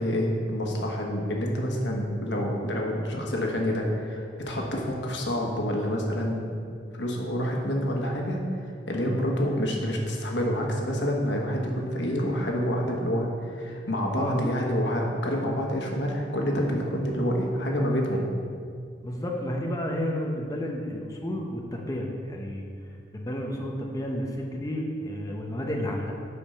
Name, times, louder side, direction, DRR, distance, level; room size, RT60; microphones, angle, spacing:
voice 1, 0.0-6.5 6.9-8.4 8.9-18.2, equal, 85° left, 0 dB, 1.4 m, -27 dB
voice 2, 19.0-22.6 23.1-26.1, equal, 20° left, 0 dB, 0.8 m, -31 dB
8.4 x 5.2 x 5.7 m, 2.3 s
head